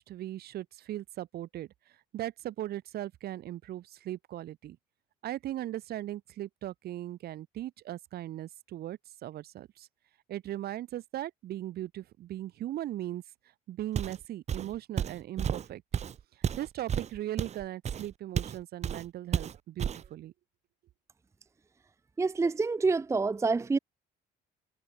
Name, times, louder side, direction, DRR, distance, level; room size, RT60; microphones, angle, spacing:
voice 1, 0.0-1.7 2.1-4.8 5.2-9.9 10.3-13.2 13.7-15.8 16.6-20.3, right 13 dB, 65° right, 2.9 m, -38 dB
Walk footsteps, 13.9-14.2 14.5-18.6 18.8-19.1 19.3-20.1, right 8 dB, 40° right, 1.2 m, -32 dB
voice 2, 22.2-23.8, right 4 dB, 15° right, 0.6 m, -27 dB
cardioid pair, 110°, 17 cm